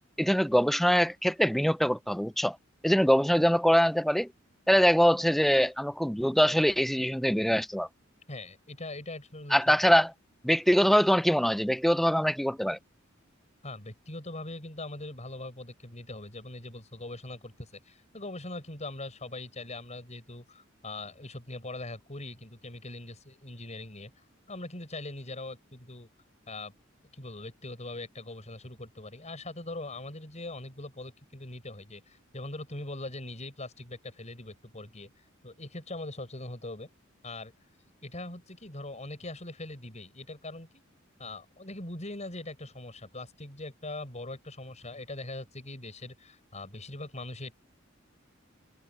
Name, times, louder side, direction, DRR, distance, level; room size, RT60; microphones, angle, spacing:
voice 1, 0.2-2.6 2.8-4.3 4.7-7.9 9.5-10.1 10.4-12.8, equal, ahead, 0.5 m, -23 dB
voice 2, 8.3-9.9 13.6-24.1 24.5-26.1 26.5-26.7 27.1-35.1 35.4-36.9 37.2-37.5 38.0-40.8 41.2-47.5, left 2 dB, 35° left, 7.2 m, -41 dB
open air
head